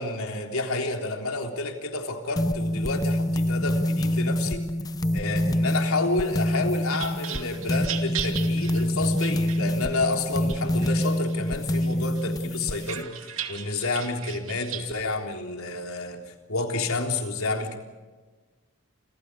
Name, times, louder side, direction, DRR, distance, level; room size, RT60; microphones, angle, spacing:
voice 1, 0.0-4.6 5.1-17.8, left 2 dB, 75° left, 3 dB, 3.7 m, -30 dB
sound 1, 2.4-13.0, left 1 dB, 15° left, 0.7 m, -26 dB
sound 2, 6.5-10.0 10.5-11.4 11.8-14.9, right 10 dB, 65° right, 2.4 m, -37 dB
29.5 x 26.5 x 4.9 m, 1.3 s
head